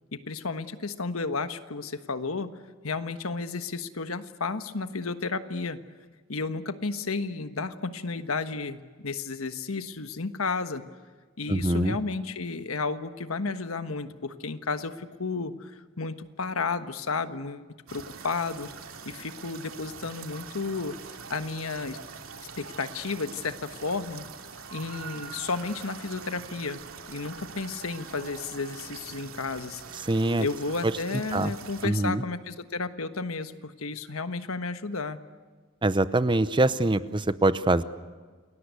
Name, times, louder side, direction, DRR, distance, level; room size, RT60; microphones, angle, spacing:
voice 1, 0.1-2.5 2.8-5.8 6.3-10.8 11.4-15.7 16.0-18.7 19.0-20.9 21.3-22.0 22.6-24.2 24.7-26.8 27.1-29.8 30.4-35.2, left 4 dB, 90° left, 10 dB, 1.3 m, -32 dB
voice 2, 11.5-12.0 30.0-30.5 30.8-30.9 31.3-31.5 31.8-32.2 35.8-37.8, right 2 dB, 25° right, 14 dB, 0.8 m, -24 dB
sound 1, 17.9-31.9, right 5 dB, 85° right, 2.5 m, -44 dB
29.0 x 20.5 x 8.3 m, 1.5 s
head